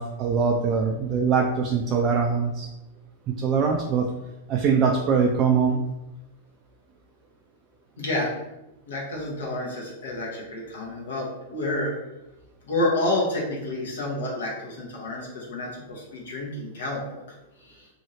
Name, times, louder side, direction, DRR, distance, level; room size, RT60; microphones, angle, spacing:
voice 1, 0.0-2.7 3.3-4.1 4.5-5.8, right 5 dB, 35° right, 0 dB, 0.3 m, -22 dB
voice 2, 8.0-8.3 8.9-11.9 12.6-17.2 17.6-17.9, left 1 dB, 65° left, -3 dB, 0.9 m, -29 dB
2.7 x 2.7 x 2.7 m, 0.97 s
figure-of-eight pair, 95°, 0 cm